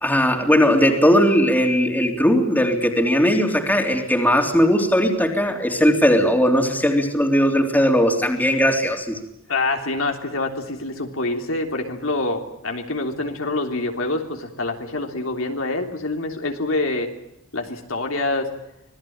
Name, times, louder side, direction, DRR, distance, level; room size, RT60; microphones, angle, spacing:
voice 1, 0.0-9.2, equal, 10° left, 3 dB, 3.4 m, -18 dB
voice 2, 9.5-17.1 17.5-18.5, left 2 dB, 75° left, 3 dB, 3.4 m, -26 dB
26.0 x 19.0 x 8.8 m, 0.82 s
head